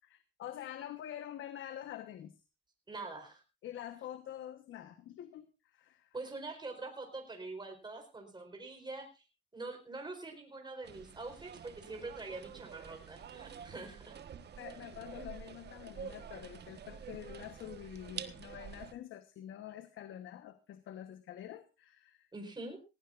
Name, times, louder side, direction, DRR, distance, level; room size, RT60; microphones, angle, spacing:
voice 1, 0.1-2.3 3.6-6.1 14.5-22.3, left 11 dB, 80° left, 9 dB, 1.2 m, -46 dB
voice 2, 2.9-3.4 6.1-9.2 9.5-14.2 22.3-22.8, right 3 dB, 20° right, 3 dB, 4.4 m, -44 dB
sound 1, 10.8-18.9, right 8 dB, 55° right, 1.4 m, -48 dB
19.0 x 16.5 x 2.6 m, 0.29 s
cardioid pair, 90°, 20 cm